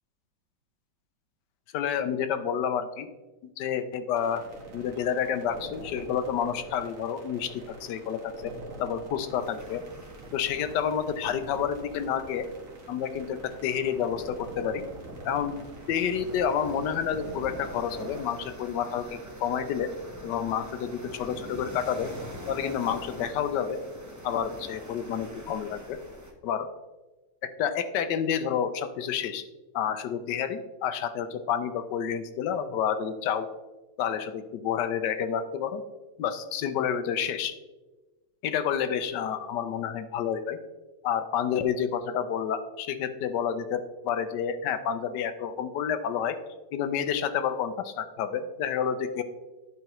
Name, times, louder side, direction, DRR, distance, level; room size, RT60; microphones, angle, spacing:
voice 1, 1.7-3.1 3.6-4.4 4.7-8.5 8.8-9.8 10.3-12.5 12.9-14.8 15.2-15.6 15.9-19.9 20.2-22.1 22.5-23.8 24.2-26.0 26.4-26.7 27.4-29.4 29.7-33.5 34.0-35.8 36.2-37.5 38.4-40.6 41.0-46.4 46.7-49.2, left 8 dB, 75° left, 10 dB, 1.2 m, -29 dB
sound 1, 4.2-18.2, right 2 dB, 50° right, 1.6 m, -45 dB
sound 2, 9.4-26.3, equal, 20° right, 0.5 m, -45 dB
11.0 x 4.7 x 3.0 m, 1.1 s
omnidirectional pair, 2.0 m